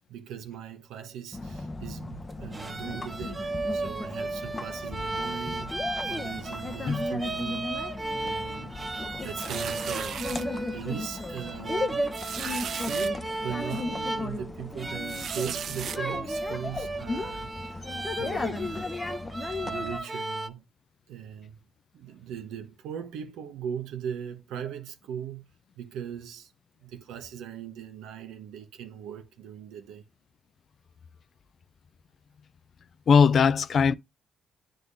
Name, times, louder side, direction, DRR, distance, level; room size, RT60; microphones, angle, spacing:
voice 1, 0.1-7.8 8.2-8.7 9.2-10.2 10.7-17.8 18.2-18.9 19.6-20.6 21.1-21.6 21.9-25.4 25.7-26.5 26.8-30.0, right 9 dB, 90° right, 1.1 m, -39 dB
sound 1, 1.3-20.0, left 3 dB, 25° left, 0.7 m, -36 dB
sound 2, 2.3-20.5, right 2 dB, 25° right, 1.2 m, -35 dB
sound 3, 9.3-10.4 11.1-11.2 11.5-11.6 12.1-13.1 13.7-13.8 15.0-16.0, right 8 dB, 65° right, 0.3 m, -36 dB
voice 2, 33.1-33.9, left 6 dB, 55° left, 0.4 m, -20 dB
9.8 x 3.9 x 2.6 m
cardioid pair, 90°, 0 cm